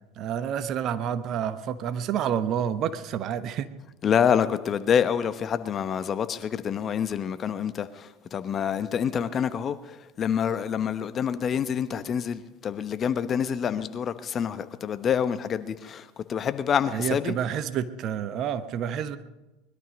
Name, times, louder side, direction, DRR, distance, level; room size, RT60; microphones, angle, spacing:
voice 1, 0.2-3.7 16.9-19.2, right 9 dB, 45° right, 1.1 m, -29 dB
voice 2, 4.0-17.3, left 8 dB, 35° left, 1.0 m, -27 dB
21.0 x 12.0 x 5.2 m
hypercardioid pair, 80°, 0 cm